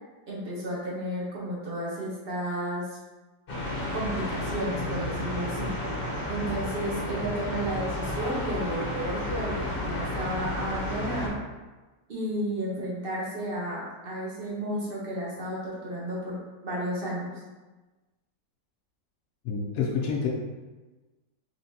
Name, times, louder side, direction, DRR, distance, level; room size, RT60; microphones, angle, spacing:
voice 1, 0.3-2.9 3.9-5.7 6.3-11.4 12.1-17.3, right 1 dB, 45° right, -5 dB, 0.8 m, -32 dB
sound 1, 3.5-11.3, left 1 dB, 45° left, 0.8 m, -32 dB
voice 2, 19.4-20.3, left 6 dB, 75° left, -2 dB, 0.8 m, -28 dB
4.4 x 3.1 x 2.7 m, 1.2 s
omnidirectional pair, 1.9 m